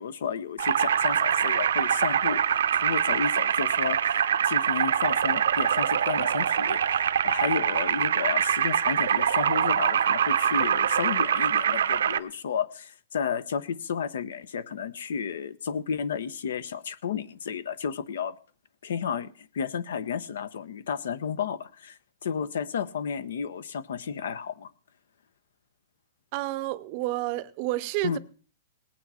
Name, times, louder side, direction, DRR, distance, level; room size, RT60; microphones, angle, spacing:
voice 1, 0.0-2.4 2.7-18.4 18.8-24.7 28.0-28.2, left 7 dB, 80° left, 0.9 m, -32 dB
sound 1, 0.6-12.2, right 8 dB, 85° right, 0.7 m, -24 dB
voice 2, 26.3-28.2, right 17 dB, 35° right, 0.6 m, -30 dB
19.0 x 8.7 x 4.3 m
hypercardioid pair, 160°, 0 cm